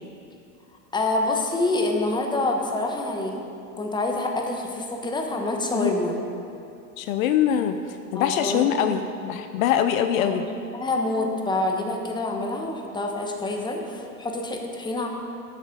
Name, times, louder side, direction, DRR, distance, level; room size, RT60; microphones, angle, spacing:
voice 1, 0.9-3.4 3.8-6.1 8.1-8.7 10.2-10.4 10.7-15.1, left 2 dB, 10° left, 2 dB, 1.0 m, -26 dB
voice 2, 7.0-10.4, left 9 dB, 60° left, 8 dB, 0.6 m, -23 dB
10.5 x 6.7 x 5.3 m, 2.6 s
hypercardioid pair, 110°, 47 cm